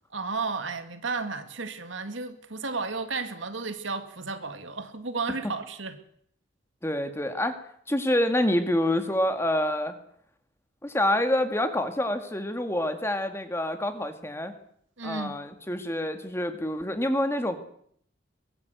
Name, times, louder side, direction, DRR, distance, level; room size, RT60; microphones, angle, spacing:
voice 1, 0.1-6.0 15.0-15.4, right 4 dB, 70° right, 2.2 m, -33 dB
voice 2, 6.8-7.6 7.9-10.0 10.8-14.5 15.0-17.6, left 1 dB, 10° left, 2.0 m, -27 dB
23.0 x 18.0 x 8.0 m
head